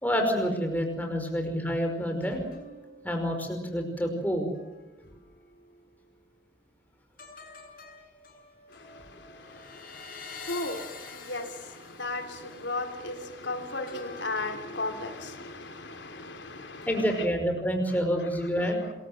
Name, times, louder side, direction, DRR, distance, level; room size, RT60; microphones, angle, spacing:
voice 1, 0.0-2.4 3.0-4.5 16.9-18.8, equal, 10° left, 5.3 m, -28 dB
sound 1, 2.2-5.9 7.2-15.7 16.1-16.4, left 3 dB, 50° left, 7.4 m, -48 dB
voice 2, 8.7-17.2 18.2-18.3 18.6-18.7, left 2 dB, 80° left, 3.7 m, -36 dB
27.5 x 22.5 x 7.9 m
head